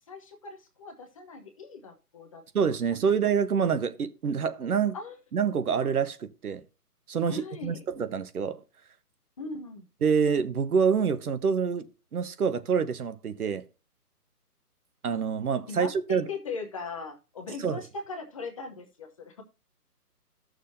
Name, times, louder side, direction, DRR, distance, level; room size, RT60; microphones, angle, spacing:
voice 1, 0.1-2.4 4.9-5.2 7.3-7.8 9.4-9.9 15.7-19.4, left 4 dB, 20° left, 0.8 m, -39 dB
voice 2, 2.5-5.0 5.3-6.6 7.1-8.6 10.0-11.9 12.1-13.6 15.0-16.3 17.6-17.8, right 6 dB, 65° right, 1.2 m, -26 dB
14.0 x 6.5 x 2.6 m
hypercardioid pair, 155°, 47 cm